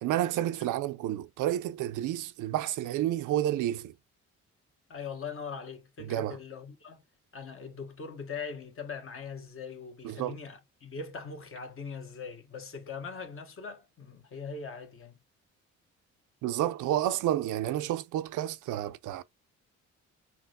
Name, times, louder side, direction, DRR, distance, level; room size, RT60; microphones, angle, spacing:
voice 1, 0.0-3.9 6.0-6.4 10.0-10.4 16.4-19.2, right 13 dB, 80° right, 0.5 m, -30 dB
voice 2, 4.9-7.0 7.3-15.2, left 5 dB, 45° left, 1.2 m, -41 dB
5.8 x 2.1 x 2.4 m
cardioid pair, 90°, 30 cm